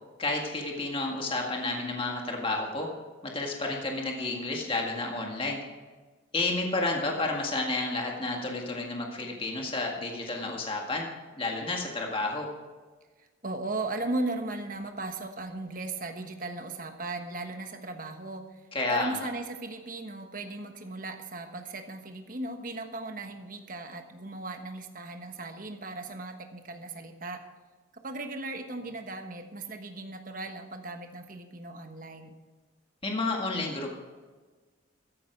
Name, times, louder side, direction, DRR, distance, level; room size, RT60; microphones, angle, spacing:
voice 1, 0.2-2.9 3.2-5.6 6.3-11.1 11.4-12.5 18.7-19.3 33.0-33.9, left 2 dB, 25° left, 0 dB, 1.9 m, -31 dB
voice 2, 13.2-18.6 18.9-27.4 28.0-32.3, right 2 dB, 40° right, 6 dB, 1.3 m, -37 dB
14.0 x 10.5 x 4.6 m, 1.3 s
head